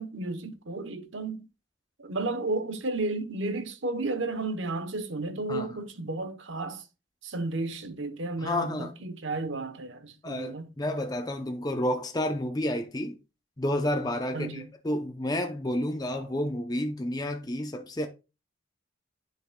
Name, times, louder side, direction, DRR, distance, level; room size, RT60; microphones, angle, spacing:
voice 1, 0.0-1.4 2.0-6.8 7.2-10.7 14.3-14.7, right 2 dB, 70° right, 1.0 m, -33 dB
voice 2, 8.4-8.9 10.2-13.2 13.6-18.1, left 1 dB, 20° left, 0.6 m, -30 dB
9.4 x 6.6 x 2.3 m
head